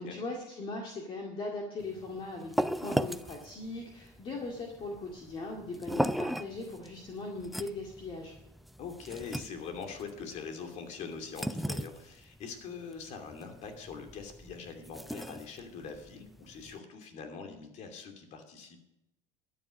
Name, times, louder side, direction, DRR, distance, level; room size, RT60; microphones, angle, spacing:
voice 1, 0.0-8.3, left 2 dB, 35° left, 0 dB, 2.1 m, -39 dB
sound 1, 1.8-16.8, equal, ahead, 0.4 m, -38 dB
voice 2, 8.8-18.8, left 5 dB, 50° left, 6 dB, 2.7 m, -43 dB
13.0 x 9.7 x 6.4 m, 0.86 s
supercardioid pair, 125°, 15 cm